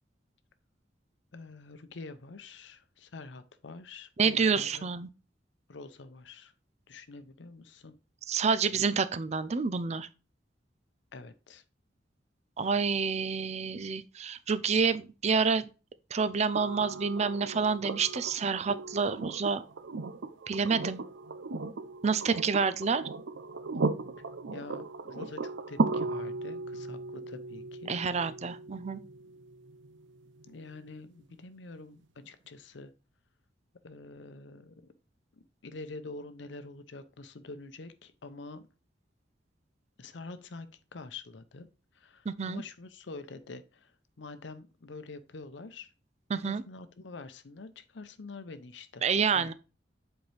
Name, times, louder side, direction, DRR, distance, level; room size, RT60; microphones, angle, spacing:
voice 1, 1.3-4.9 5.7-6.5 6.9-7.9 11.1-11.6 24.5-27.9 30.5-32.9 33.8-34.8 35.3-38.7 40.0-40.7 40.9-41.7 41.9-45.9 46.4-49.0 49.3-49.5, left 3 dB, 75° left, 0.7 m, -46 dB
voice 2, 4.2-5.1 8.3-10.1 12.6-15.7 16.1-19.6 20.5-21.0 22.0-23.0 27.9-29.0 42.3-42.6 46.3-46.6 49.0-49.5, right 5 dB, 35° right, 0.5 m, -28 dB
sound 1, 16.6-30.5 32.2-32.3, right 3 dB, 80° right, 0.6 m, -36 dB
7.9 x 4.4 x 3.3 m
head